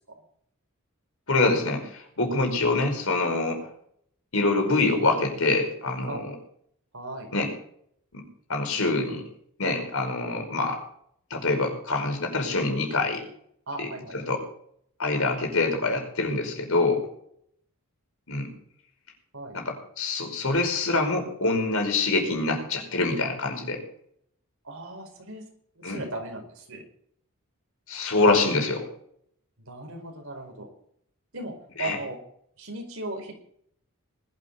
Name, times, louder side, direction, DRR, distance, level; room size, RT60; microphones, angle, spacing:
voice 1, 1.3-3.6 4.3-6.3 7.3-7.5 8.1-8.2 8.5-9.2 9.6-10.8 11.3-13.2 13.8-14.4 15.0-17.1 18.3-18.5 19.5-23.8 25.8-26.0 27.9-28.9 31.8-32.0, left 3 dB, 70° left, 3 dB, 5.2 m, -25 dB
voice 2, 6.9-7.3 13.7-14.1 19.3-19.6 24.6-25.4 25.7-26.8 29.7-30.7 31.3-32.2 32.6-33.3, right 2 dB, 70° right, 3 dB, 4.8 m, -37 dB
20.0 x 12.0 x 4.1 m, 0.67 s
head